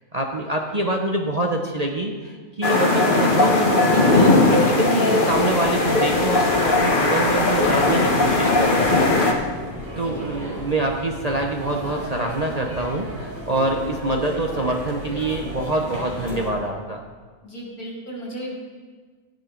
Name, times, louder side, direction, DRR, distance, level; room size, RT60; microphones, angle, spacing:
voice 1, 0.1-8.8 10.0-17.0, right 1 dB, 35° right, 1 dB, 0.8 m, -25 dB
sound 1, 2.6-9.3, left 2 dB, 35° left, 1.4 m, -18 dB
sound 2, 5.3-16.5, equal, 65° right, 4.3 m, -35 dB
voice 2, 9.8-10.3 17.4-18.6, right 1 dB, 80° left, -4 dB, 4.0 m, -35 dB
13.0 x 10.5 x 4.5 m, 1.5 s
omnidirectional pair, 1.5 m